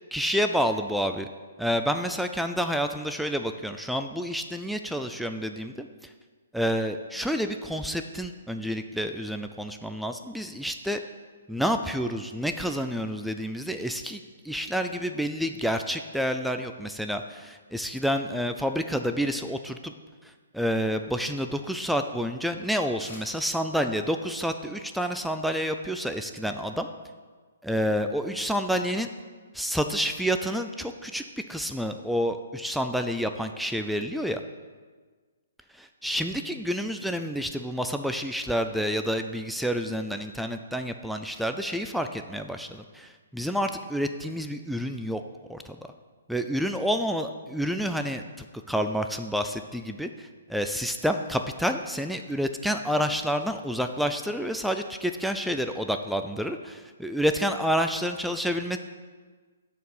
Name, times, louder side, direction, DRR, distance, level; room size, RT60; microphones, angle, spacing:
voice 1, 0.1-1.3 1.6-6.1 6.5-11.0 11.5-19.9 20.2-26.9 27.6-29.1 29.5-31.2 31.5-34.4 35.7-45.2 45.5-45.8 46.3-50.1 50.5-58.8, equal, ahead, 6 dB, 0.3 m, -29 dB
sound 1, 23.0-23.5 23.9-24.0, left 2 dB, 45° left, 2.8 m, -47 dB
12.0 x 4.7 x 5.4 m, 1.4 s
hypercardioid pair, 160°, 0 cm